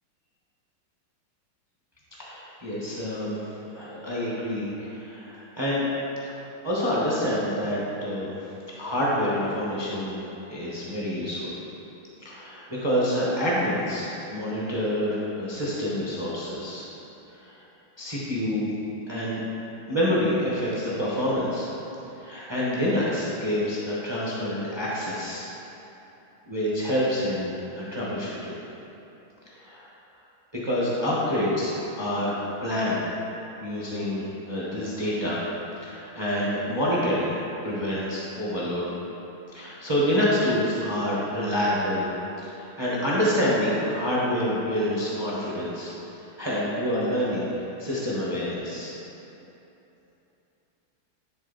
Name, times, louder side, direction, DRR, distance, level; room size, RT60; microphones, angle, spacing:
voice 1, 2.2-5.9 6.6-8.4 8.8-10.2 10.5-11.6 12.2-16.8 17.3-17.6 18.0-18.7 19.1-19.4 19.9-21.7 22.2-25.5 26.5-28.6 29.5-29.9 30.6-33.0 33.6-35.4 35.8-37.3 37.6-38.9 39.5-42.1 42.4-45.9 46.4-47.5 47.8-49.0, equal, 30° right, -7 dB, 0.5 m, -27 dB
10.0 x 3.7 x 4.1 m, 3.0 s
omnidirectional pair, 2.3 m